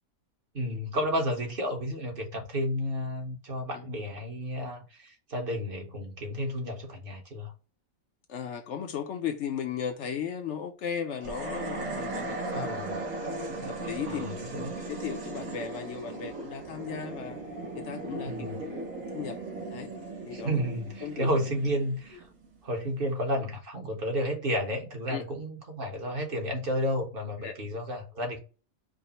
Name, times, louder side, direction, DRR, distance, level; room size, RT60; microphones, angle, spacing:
voice 1, 0.5-7.5 12.5-12.9 14.0-14.7 18.2-18.6 20.3-22.3 22.6-28.4, equal, 40° right, 1.2 m, -32 dB
voice 2, 8.3-12.7 13.6-17.4 17.7-19.4 19.7-19.9 20.2-20.6 21.0-21.3 25.1-25.2 27.4-27.5, left 8 dB, 65° left, 0.8 m, -36 dB
sound 1, 11.2-22.6, right 2 dB, 65° right, 1.6 m, -37 dB
5.0 x 2.0 x 4.1 m
omnidirectional pair, 1.5 m